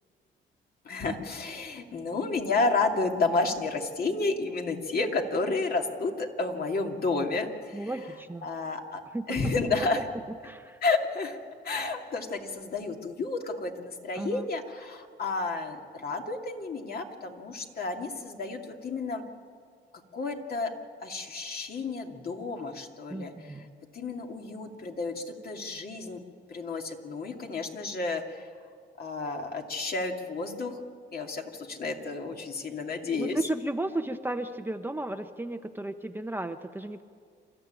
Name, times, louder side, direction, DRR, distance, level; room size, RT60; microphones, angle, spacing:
voice 1, 0.8-7.9 8.4-9.0 9.3-10.0 10.8-11.4 11.6-19.2 20.1-20.7 21.0-23.7 23.9-26.2 26.5-28.5 29.0-30.8 31.1-33.4, left 3 dB, 50° left, 2 dB, 2.6 m, -31 dB
voice 2, 7.7-8.5 9.1-9.2 10.4-10.8 14.2-14.5 23.1-23.7 33.2-37.0, right 2 dB, 10° right, 7 dB, 0.9 m, -34 dB
28.5 x 13.5 x 9.0 m, 2.1 s
cardioid pair, 90°, 20 cm